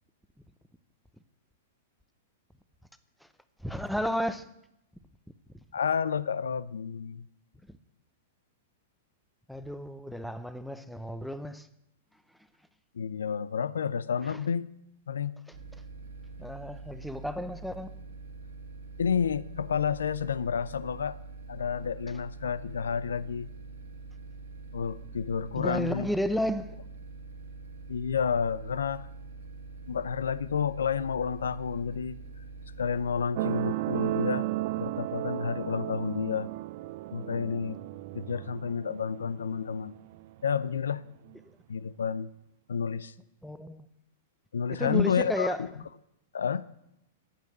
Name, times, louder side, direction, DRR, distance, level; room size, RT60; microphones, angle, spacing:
voice 1, 3.6-4.5 7.7-7.8 9.5-11.7 14.3-14.4 16.4-18.0 25.6-26.8 43.4-43.9 44.7-45.7, equal, ahead, 0.8 m, -32 dB
voice 2, 5.7-7.3 12.9-14.7 15.1-15.3 19.0-21.2 21.5-23.5 24.7-26.1 27.9-29.1 29.9-32.2 32.8-34.5 34.8-36.5 37.1-37.8 38.1-40.0 40.4-41.0 41.7-42.3 42.7-43.1 44.5-45.5 46.3-46.7, left 6 dB, 75° left, 0.6 m, -30 dB
sound 1, 15.5-33.3, right 3 dB, 70° right, 2.2 m, -45 dB
sound 2, 33.4-40.4 41.3-41.4, right 16 dB, 50° right, 0.6 m, -34 dB
11.0 x 9.1 x 8.1 m
hypercardioid pair, 105°, 0 cm